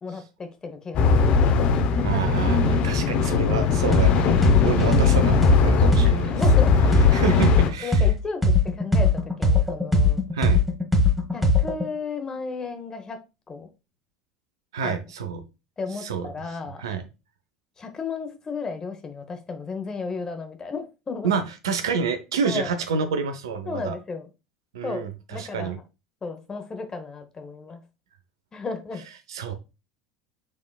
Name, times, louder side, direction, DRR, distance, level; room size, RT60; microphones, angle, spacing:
voice 1, 0.0-2.2 4.5-5.0 6.2-6.9 7.8-10.2 11.3-13.2 13.5-13.7 14.8-15.0 15.8-16.8 17.8-21.3 22.4-22.7 23.6-24.3 24.8-25.8 26.2-27.8 28.5-29.0, left 4 dB, 25° left, 1.1 m, -34 dB
sound 1, 0.9-7.7, left 4 dB, 45° left, 0.8 m, -20 dB
voice 2, 2.0-6.4 7.1-8.0 10.3-10.6 14.7-15.4 16.0-16.3 16.8-17.0 21.2-23.9 24.7-25.8 29.3-29.5, right 6 dB, 70° right, 0.7 m, -28 dB
sound 2, 3.9-4.1 4.4-8.1 8.4-11.8, left 2 dB, 5° right, 1.3 m, -19 dB
6.4 x 3.6 x 2.3 m
figure-of-eight pair, 75°, 3 cm